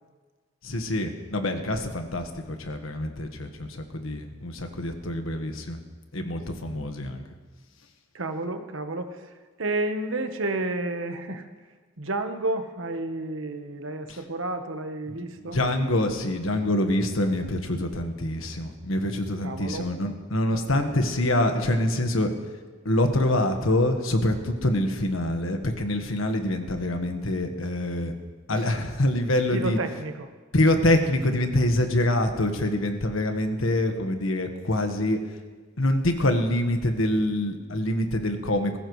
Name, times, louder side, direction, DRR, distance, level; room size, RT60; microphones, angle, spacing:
voice 1, 0.6-5.8 6.1-7.2 14.1-14.2 15.4-22.3 22.8-28.1 28.5-29.8 30.5-35.2 35.8-38.8, left 1 dB, 85° left, 5 dB, 1.4 m, -25 dB
voice 2, 8.1-9.2 9.6-11.5 12.0-15.6 19.4-19.9 28.5-28.6 29.5-30.3, right 2 dB, 75° right, 7 dB, 1.2 m, -31 dB
20.0 x 16.0 x 3.2 m, 1.4 s
head